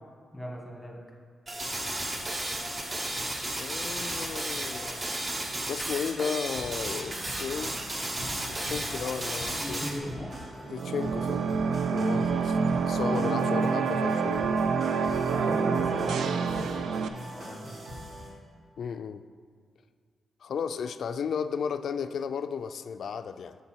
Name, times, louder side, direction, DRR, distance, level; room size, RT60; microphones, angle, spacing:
voice 1, 0.3-1.0 8.4-8.6 9.6-10.4 12.0-12.2 13.4-13.5 15.3-17.8, equal, ahead, -2 dB, 1.4 m, -37 dB
sound 1, 1.5-10.0, right 1 dB, 25° right, 1.0 m, -33 dB
voice 2, 3.6-5.1 5.7-7.8 8.5-9.8 10.7-11.4 11.9-12.6 12.9-14.7 18.8-19.2 20.4-23.6, left 6 dB, 65° left, 11 dB, 0.3 m, -34 dB
sound 2, 6.5-18.3, equal, 50° right, 2.0 m, -43 dB
sound 3, 10.7-17.1, right 5 dB, 80° right, 0.4 m, -27 dB
6.8 x 6.6 x 4.4 m, 2.1 s
cardioid pair, 120°, 0 cm